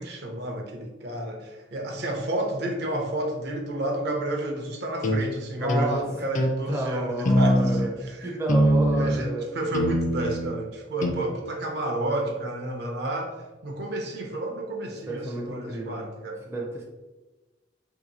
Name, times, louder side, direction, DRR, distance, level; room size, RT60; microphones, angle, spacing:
voice 1, 0.0-8.5 8.9-13.3 13.6-16.4, right 1 dB, 65° right, 3 dB, 0.6 m, -31 dB
sound 1, 5.0-5.2 5.7-5.9 6.3-6.6 7.2-7.9 8.5-9.2 9.7-10.5 11.0-11.1, equal, 45° left, 0.4 m, -22 dB
voice 2, 5.6-6.1 6.7-7.9 8.2-9.5 15.1-16.0 16.5-16.8, right 1 dB, 15° right, -1 dB, 0.4 m, -31 dB
2.8 x 2.6 x 4.0 m, 1.2 s
head